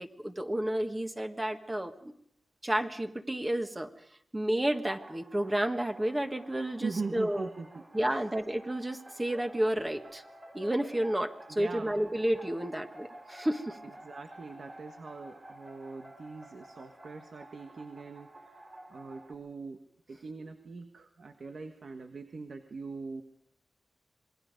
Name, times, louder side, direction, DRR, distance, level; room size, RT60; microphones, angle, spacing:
voice 1, 0.0-2.1 2.6-3.9 4.3-7.5 7.9-10.2 10.5-13.8, right 1 dB, 20° right, 5 dB, 1.7 m, -31 dB
sound 1, 4.7-19.3, right 1 dB, 35° right, 5.9 m, -51 dB
voice 2, 6.8-7.8 8.1-8.3 11.5-12.1 13.8-18.6 18.9-23.2, right 4 dB, 65° right, 6 dB, 1.5 m, -42 dB
27.0 x 21.0 x 5.3 m, 0.70 s
wide cardioid pair, 90°, 0 cm